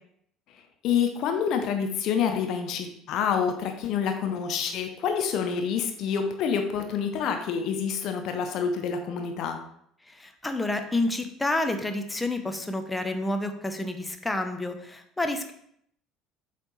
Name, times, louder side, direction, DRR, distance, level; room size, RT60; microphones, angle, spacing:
voice 1, 0.5-9.6, left 7 dB, 50° left, 5 dB, 0.6 m, -27 dB
voice 2, 10.1-15.5, left 2 dB, 10° left, 6 dB, 0.7 m, -29 dB
7.7 x 4.2 x 3.1 m, 0.70 s
figure-of-eight pair, 60°, 0 cm